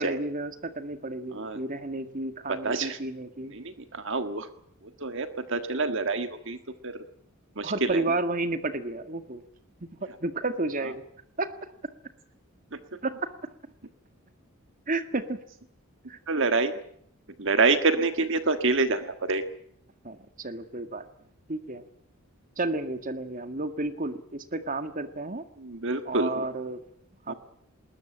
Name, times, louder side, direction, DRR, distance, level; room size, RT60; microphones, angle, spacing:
voice 1, 0.0-3.6 7.6-9.4 10.2-11.0 11.4-11.5 13.0-13.3 14.9-15.4 16.1-16.2 20.0-21.0 21.5-21.8 22.6-25.4 26.1-26.8 27.3-27.4, right 2 dB, 40° right, 9 dB, 1.8 m, -31 dB
voice 2, 2.6-3.0 3.5-4.5 5.0-6.6 6.8-7.0 7.6-8.0 16.3-16.7 17.4-19.4 25.6-26.4 27.3-27.4, right 3 dB, 55° right, 9 dB, 1.6 m, -27 dB
20.5 x 20.5 x 8.9 m, 0.68 s
head